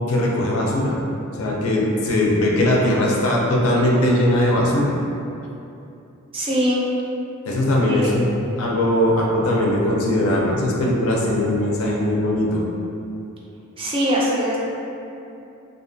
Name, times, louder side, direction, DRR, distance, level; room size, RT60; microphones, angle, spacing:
voice 1, 0.1-1.0 1.4-4.9 7.4-8.3 8.6-12.6, left 1 dB, 75° left, -3 dB, 0.4 m, -20 dB
voice 2, 6.3-6.8 7.8-8.1 13.8-14.6, equal, 25° right, -5 dB, 0.4 m, -21 dB
2.5 x 2.3 x 2.5 m, 2.7 s
head